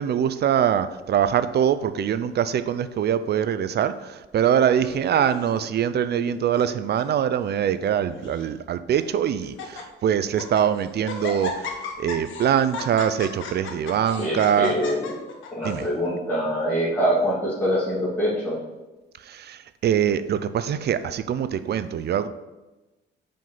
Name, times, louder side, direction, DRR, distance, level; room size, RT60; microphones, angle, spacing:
voice 1, 0.0-14.7 15.6-15.9 19.2-22.3, right 9 dB, 55° right, 12 dB, 0.5 m, -23 dB
Laughter, 4.8-5.6 6.3-6.7 7.0-7.1 7.8-8.4 9.0-9.1 9.4-9.8 10.2-10.7 11.1-15.9, left 4 dB, 75° left, 1.2 m, -35 dB
voice 2, 14.2-15.1 15.5-18.6, equal, 10° left, -11 dB, 2.5 m, -24 dB
5.5 x 5.2 x 5.8 m, 1.1 s
cardioid pair, 90°, 20 cm